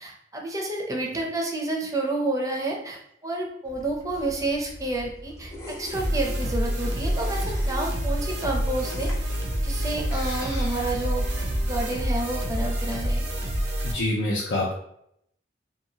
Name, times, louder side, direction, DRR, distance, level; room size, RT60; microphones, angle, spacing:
voice 1, 0.0-9.1 9.6-11.3 11.6-13.3, right 2 dB, 20° right, 0 dB, 0.5 m, -30 dB
sound 1, 3.6-11.8, equal, 15° left, 0.7 m, -38 dB
sound 2, 5.9-13.9, equal, 80° right, 0.7 m, -27 dB
voice 2, 13.8-14.8, left 1 dB, 80° left, -4 dB, 0.5 m, -26 dB
2.8 x 2.3 x 2.8 m, 0.73 s
head